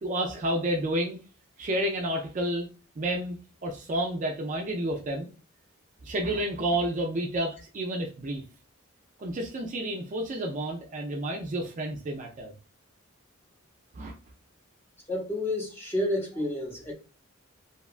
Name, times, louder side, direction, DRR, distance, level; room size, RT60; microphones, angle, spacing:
voice 1, 0.0-1.2 1.6-2.7 3.0-5.3 6.0-8.4 9.2-12.5 13.9-14.1, right 1 dB, 35° right, 2 dB, 0.3 m, -30 dB
voice 2, 15.1-16.9, left 1 dB, 10° left, -1 dB, 0.6 m, -30 dB
2.8 x 2.2 x 2.3 m, 0.34 s
head